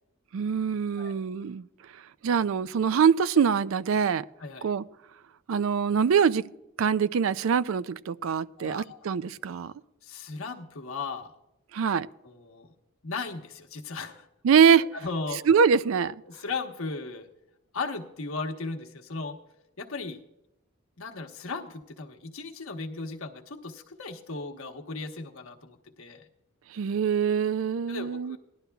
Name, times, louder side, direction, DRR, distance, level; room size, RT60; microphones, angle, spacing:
voice 1, 0.3-1.6 2.2-4.3 4.6-4.8 5.5-6.5 6.8-9.7 11.7-12.1 14.4-14.9 15.5-16.2 26.7-28.4, right 6 dB, 70° right, 0.4 m, -24 dB
voice 2, 8.6-9.1 10.0-11.3 12.2-12.7 13.0-14.3 14.9-15.4 16.2-17.3 17.7-19.4 19.8-20.2 21.0-26.3 27.9-28.4, left 3 dB, 80° left, 1.2 m, -36 dB
18.5 x 11.5 x 2.3 m
head